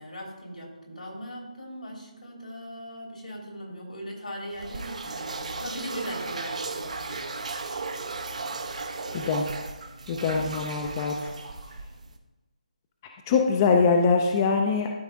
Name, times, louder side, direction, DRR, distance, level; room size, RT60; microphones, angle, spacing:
voice 1, 0.0-7.2, equal, 75° left, -1 dB, 2.9 m, -39 dB
sound 1, 4.5-12.2, right 3 dB, 60° right, 0.8 m, -35 dB
voice 2, 9.1-9.5 10.1-11.2 13.3-14.9, left 5 dB, 25° left, 2 dB, 0.5 m, -23 dB
12.5 x 4.2 x 3.7 m, 1.1 s
figure-of-eight pair, 155°, 4 cm